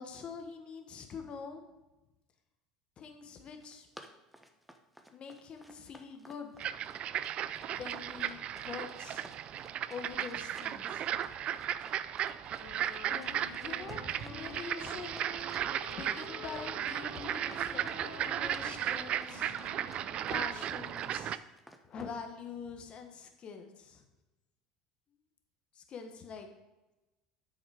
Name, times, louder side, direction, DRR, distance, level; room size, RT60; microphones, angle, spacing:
voice 1, 0.0-1.7 3.0-3.9 5.1-6.6 7.7-9.3 9.9-11.2 13.0-15.2 15.9-19.6 20.3-21.4 21.8-24.0 25.7-26.5, left 5 dB, 45° left, 5 dB, 1.2 m, -45 dB
Run, 3.4-22.1, equal, 5° right, 0.9 m, -54 dB
sound 1, 6.6-21.4, right 10 dB, 50° right, 0.4 m, -36 dB
sound 2, 12.6-21.0, left 2 dB, 80° left, 1.7 m, -49 dB
8.1 x 6.3 x 4.8 m, 1.1 s
supercardioid pair, 85°, 3 cm